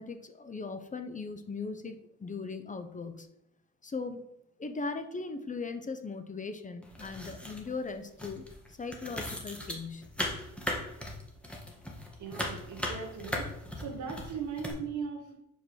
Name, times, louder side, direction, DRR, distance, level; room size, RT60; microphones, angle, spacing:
voice 1, 0.0-3.3 3.8-4.2 4.6-10.1, left 4 dB, 25° left, 8 dB, 0.7 m, -39 dB
sound 1, 6.8-7.9 8.2-14.7, left 1 dB, 5° left, 1.6 m, -38 dB
voice 2, 12.2-13.5 13.8-15.4, right 6 dB, 75° right, 1 dB, 1.5 m, -38 dB
5.3 x 4.8 x 6.3 m, 0.81 s
cardioid pair, 90°, 30 cm